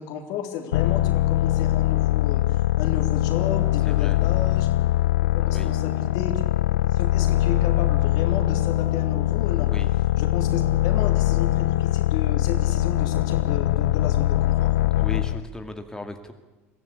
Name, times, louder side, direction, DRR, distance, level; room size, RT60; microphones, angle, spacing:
voice 1, 0.0-4.7 5.3-6.4 6.9-9.7 10.2-14.7, left 8 dB, 60° left, 5 dB, 3.6 m, -33 dB
sound 1, 0.7-15.4, left 15 dB, 80° left, 0.8 m, -22 dB
voice 2, 3.8-4.2 5.5-5.7 9.7-9.9 15.0-16.3, left 2 dB, 10° left, 6 dB, 2.3 m, -36 dB
23.0 x 15.0 x 8.6 m, 1.2 s
hypercardioid pair, 75°, 8 cm